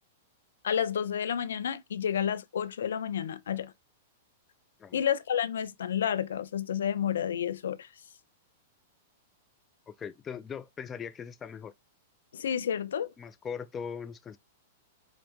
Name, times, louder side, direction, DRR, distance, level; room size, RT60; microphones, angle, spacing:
voice 1, 0.6-3.7 4.9-7.9 12.3-13.1, left 8 dB, 90° left, 0.5 m, -30 dB
voice 2, 9.9-11.7 13.2-14.4, left 7 dB, 20° left, 0.3 m, -40 dB
5.1 x 2.1 x 3.0 m
hypercardioid pair, 145°, 0 cm